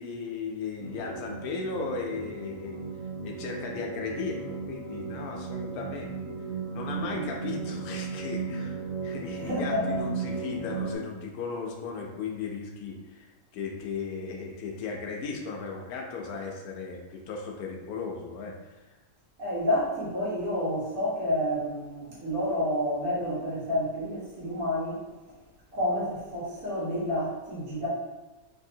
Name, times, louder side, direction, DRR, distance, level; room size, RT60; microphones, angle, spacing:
voice 1, 0.0-2.8 3.2-6.1 6.4-6.5 6.7-18.8, left 5 dB, 80° left, 1 dB, 1.1 m, -36 dB
sound 1, 0.8-11.0, right 5 dB, 35° left, 0.6 m, -36 dB
voice 2, 6.9-7.3 9.4-9.8 19.4-25.0 25.7-27.9, left 1 dB, 70° right, -7 dB, 1.5 m, -29 dB
3.4 x 2.6 x 2.6 m, 1.1 s
omnidirectional pair, 1.6 m